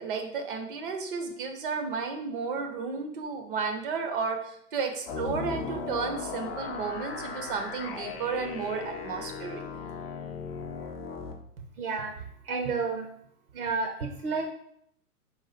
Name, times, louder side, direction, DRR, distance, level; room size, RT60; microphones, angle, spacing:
voice 1, 0.0-9.6, right 5 dB, 35° right, 5 dB, 0.6 m, -33 dB
sound 1, 5.1-11.3, left 5 dB, 40° left, 0.6 m, -37 dB
voice 2, 11.8-12.1 12.5-13.1 13.5-14.5, right 4 dB, 65° right, 3 dB, 0.8 m, -30 dB
4.0 x 2.3 x 4.1 m, 0.71 s
hypercardioid pair, 125°, 47 cm